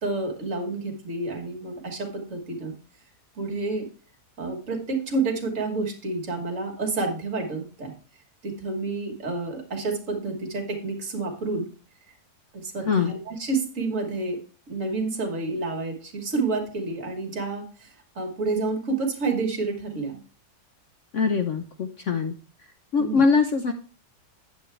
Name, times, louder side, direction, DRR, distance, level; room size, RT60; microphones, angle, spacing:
voice 1, 0.0-2.7 3.3-3.9 4.4-7.9 8.4-11.7 12.5-14.4 14.7-20.2 23.0-23.2, right 3 dB, 50° right, 3 dB, 1.8 m, -29 dB
voice 2, 21.1-22.3 22.9-23.7, left 5 dB, 60° left, 6 dB, 0.8 m, -22 dB
8.8 x 7.5 x 3.3 m, 0.39 s
omnidirectional pair, 1.8 m